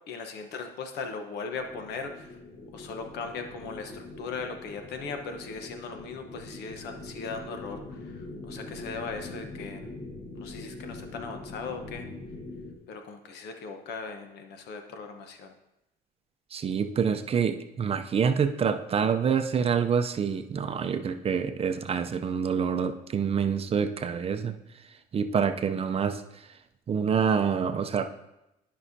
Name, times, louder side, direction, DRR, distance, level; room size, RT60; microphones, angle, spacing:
voice 1, 0.1-2.3 2.7-9.9 10.3-12.1 12.9-15.5, left 4 dB, 80° left, 5 dB, 1.0 m, -38 dB
sound 1, 1.5-12.8, left 2 dB, 40° left, 1.2 m, -43 dB
voice 2, 16.5-24.6 25.1-26.2 26.9-28.1, right 6 dB, 35° right, 8 dB, 0.5 m, -26 dB
12.0 x 5.5 x 2.7 m, 0.90 s
cardioid pair, 110°, 17 cm